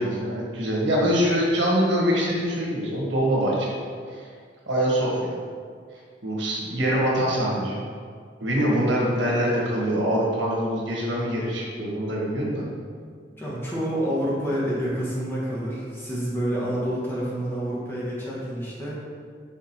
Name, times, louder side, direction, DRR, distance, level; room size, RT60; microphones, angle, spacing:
voice 1, 0.0-3.8 4.1-4.2 4.7-5.4 6.2-7.9 8.4-12.6, equal, 85° right, -4 dB, 1.4 m, -24 dB
voice 2, 13.3-19.0, equal, 15° left, -7 dB, 1.5 m, -28 dB
6.2 x 3.8 x 4.4 m, 2.1 s
head